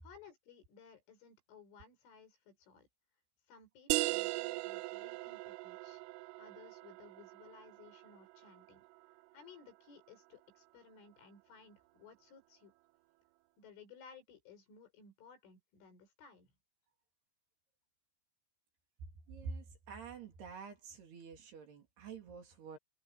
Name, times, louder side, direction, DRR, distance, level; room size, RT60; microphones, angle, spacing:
voice 1, 0.0-2.9 3.5-6.0 6.4-8.9 9.3-12.7 13.6-16.5, left 6 dB, 75° left, 8.1 m, -58 dB
sound 1, 3.9-9.3, right 21 dB, 85° right, 3.2 m, -39 dB
voice 2, 19.3-22.8, right 5 dB, 55° right, 5.0 m, -47 dB
omnidirectional pair, 5.7 m